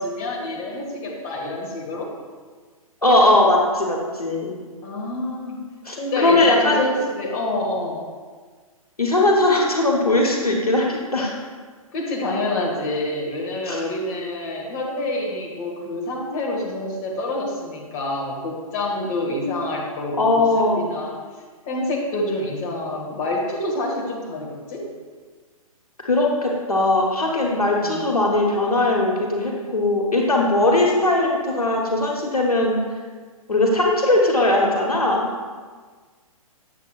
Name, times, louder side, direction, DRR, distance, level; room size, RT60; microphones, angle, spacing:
voice 1, 0.0-2.1 4.8-5.6 6.0-8.1 11.9-21.2 21.7-24.8 27.8-28.0, left 1 dB, 30° left, -2 dB, 1.4 m, -27 dB
voice 2, 3.0-4.5 5.8-6.9 9.0-11.4 13.7-13.8 20.2-20.9 26.0-32.8 33.5-35.3, left 2 dB, 85° left, -1 dB, 1.3 m, -19 dB
8.0 x 7.5 x 2.4 m, 1.5 s
figure-of-eight pair, 125°, 19 cm